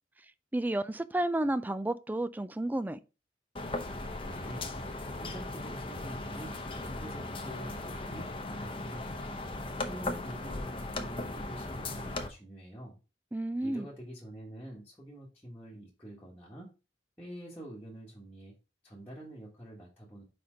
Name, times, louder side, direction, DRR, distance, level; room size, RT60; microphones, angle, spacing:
voice 1, 0.5-3.0 13.3-13.9, right 1 dB, 10° right, 0.3 m, -31 dB
sound 1, 3.6-12.3, left 2 dB, 30° left, 0.7 m, -38 dB
voice 2, 4.2-4.7 5.1-6.6 7.0-9.4 9.8-13.0 13.6-16.7 17.2-18.5 18.8-20.2, right 1 dB, 10° left, 1.4 m, -46 dB
5.0 x 4.4 x 5.0 m
head